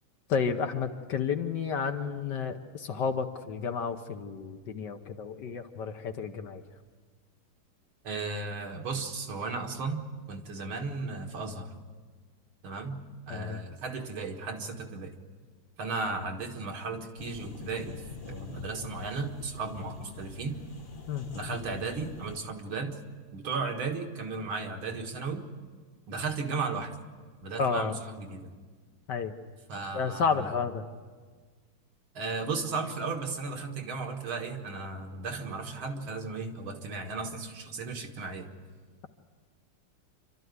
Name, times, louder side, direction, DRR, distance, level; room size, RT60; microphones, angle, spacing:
voice 1, 0.3-6.6 13.3-13.6 21.1-21.3 27.6-28.0 29.1-29.4 29.9-30.8, left 6 dB, 60° left, 6 dB, 1.4 m, -31 dB
voice 2, 8.0-10.0 10.3-11.7 12.6-15.1 15.8-18.0 18.3-20.6 21.3-23.0 23.3-25.4 26.1-26.9 27.4-28.5 29.7-30.5 32.1-38.5, right 4 dB, 70° right, 3 dB, 2.5 m, -35 dB
sound 1, 17.2-22.4, left 4 dB, 35° left, 0.9 m, -44 dB
27.5 x 13.0 x 9.5 m, 1.5 s
omnidirectional pair, 2.4 m